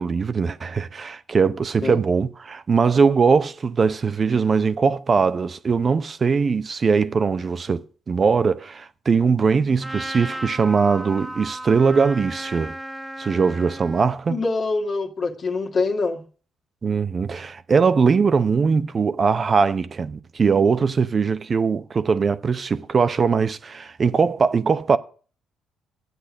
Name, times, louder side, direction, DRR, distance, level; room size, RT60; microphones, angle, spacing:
voice 1, 0.0-12.8 13.2-14.4 16.8-25.0, right 5 dB, 40° right, 0.7 m, -21 dB
Trumpet, 9.8-14.1, right 1 dB, 10° right, 1.4 m, -35 dB
voice 2, 14.3-16.2, left 3 dB, 45° left, 1.7 m, -24 dB
11.0 x 8.2 x 6.3 m
hypercardioid pair, 55°, 0 cm